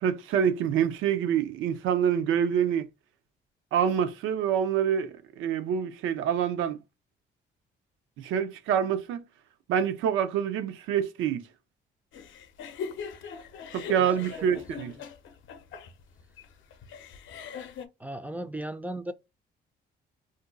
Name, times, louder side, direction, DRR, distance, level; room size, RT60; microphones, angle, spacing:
voice 1, 0.0-2.8 3.7-6.8 8.2-9.2 9.7-11.4 13.7-15.0, right 8 dB, 90° right, 0.5 m, -26 dB
sound 1, 12.1-17.9, left 6 dB, 75° left, 0.6 m, -41 dB
voice 2, 18.0-19.1, right 1 dB, 10° right, 0.3 m, -35 dB
2.6 x 2.2 x 3.8 m
cardioid pair, 90°, 20 cm